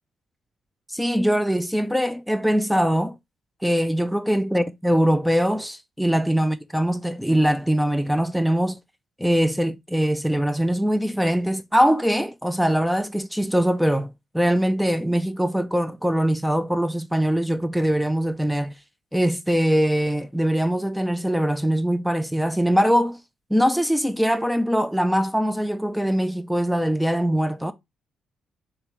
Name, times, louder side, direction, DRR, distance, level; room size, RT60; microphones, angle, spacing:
voice 1, 0.9-3.2 3.6-8.8 9.2-18.7 19.1-23.2 23.5-27.7, equal, ahead, 0.3 m, -22 dB
4.6 x 2.9 x 3.0 m
cardioid pair, 90°, 0 cm